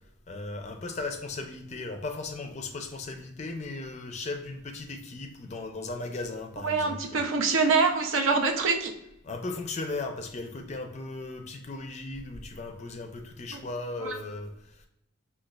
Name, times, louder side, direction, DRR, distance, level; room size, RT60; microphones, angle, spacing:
voice 1, 0.3-7.2 9.2-14.9, left 3 dB, 35° left, 6 dB, 0.4 m, -37 dB
voice 2, 6.6-8.9 13.5-13.6 14.0-14.2, right 4 dB, 80° right, 4 dB, 0.5 m, -25 dB
5.0 x 2.2 x 2.2 m, 0.81 s
head